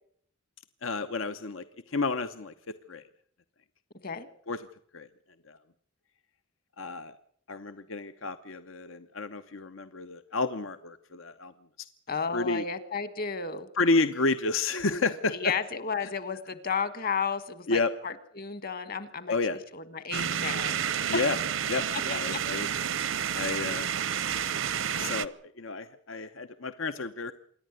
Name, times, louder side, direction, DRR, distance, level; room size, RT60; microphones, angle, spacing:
voice 1, 0.8-2.5 2.9-3.0 4.5-4.6 4.9-5.1 5.5-5.6 6.8-7.1 7.5-11.5 12.3-12.6 13.8-15.3 17.7-17.9 19.3-19.6 21.1-21.4 21.7-22.7 23.3-23.9 24.9-27.3, left 3 dB, 80° left, 10 dB, 0.9 m, -30 dB
voice 2, 12.1-13.7 15.3-19.4 19.7-21.3 22.1-22.4, left 5 dB, 45° left, 14 dB, 1.6 m, -33 dB
sound 1, 20.1-25.3, right 8 dB, 80° right, 0.8 m, -30 dB
26.5 x 11.5 x 9.6 m, 0.64 s
head